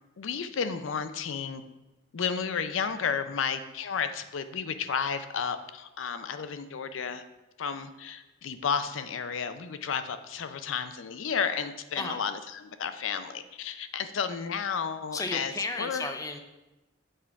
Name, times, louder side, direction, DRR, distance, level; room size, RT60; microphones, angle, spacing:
voice 1, 0.2-1.6 2.1-7.2 7.6-15.5 15.8-16.1, left 6 dB, 80° left, 11 dB, 0.5 m, -32 dB
voice 2, 15.1-16.4, left 3 dB, 15° left, 6 dB, 0.5 m, -33 dB
7.8 x 3.7 x 4.6 m, 1.0 s
head